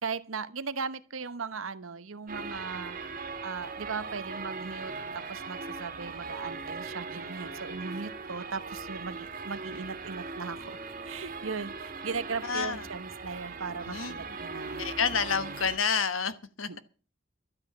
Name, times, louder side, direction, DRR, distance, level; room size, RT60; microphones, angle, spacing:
voice 1, 0.0-3.0 3.4-14.9 15.1-15.6 16.7-16.8, right 5 dB, 85° right, 1.0 m, -38 dB
sound 1, 2.3-15.8, right 4 dB, 45° right, 1.9 m, -39 dB
voice 2, 12.4-12.9 13.9-14.4 14.8-16.8, left 6 dB, 85° left, 1.2 m, -30 dB
13.0 x 8.9 x 7.1 m
head